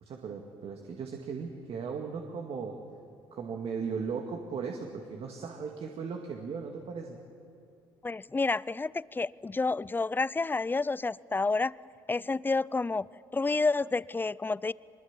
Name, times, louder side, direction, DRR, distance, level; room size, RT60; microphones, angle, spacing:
voice 1, 0.1-2.8 3.3-7.2, right 5 dB, 55° right, 2 dB, 2.2 m, -37 dB
voice 2, 8.0-11.7 12.1-13.1 13.3-14.7, left 3 dB, 15° left, 21 dB, 0.5 m, -29 dB
24.0 x 21.0 x 7.5 m, 2.6 s
hypercardioid pair, 60°, 12 cm